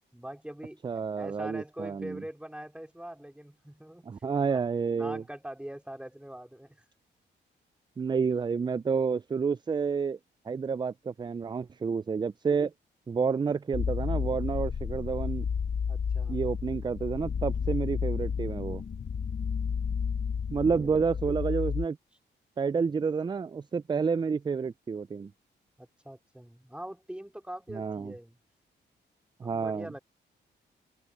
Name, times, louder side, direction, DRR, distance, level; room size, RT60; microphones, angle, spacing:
voice 1, 0.1-0.8 1.2-4.1 4.5-4.6 4.9-6.8 15.9-16.4 20.4-20.9 25.8-28.4 29.4-30.0, right 1 dB, 5° right, 3.4 m, -43 dB
voice 2, 0.8-2.2 4.1-5.2 8.0-10.2 10.5-12.7 13.1-15.5 16.3-18.8 20.5-22.0 22.6-25.3 27.7-28.1 29.4-29.9, right 5 dB, 25° right, 0.3 m, -29 dB
sound 1, 13.7-21.9, left 6 dB, 55° left, 1.5 m, -31 dB
open air
cardioid pair, 80°, 19 cm